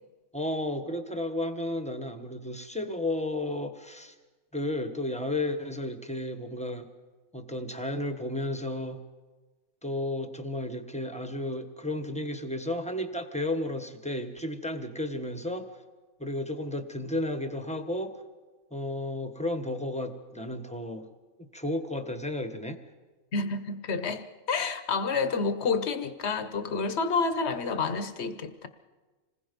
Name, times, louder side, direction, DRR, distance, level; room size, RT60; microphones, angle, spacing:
voice 1, 0.3-4.1 4.5-6.9 7.3-9.0 9.8-15.7 16.2-18.2 18.7-21.1 21.5-22.8, left 1 dB, 5° left, 7 dB, 1.3 m, -33 dB
voice 2, 23.3-28.7, left 4 dB, 50° left, 10 dB, 1.4 m, -29 dB
27.0 x 20.0 x 5.4 m, 1.3 s
omnidirectional pair, 1.5 m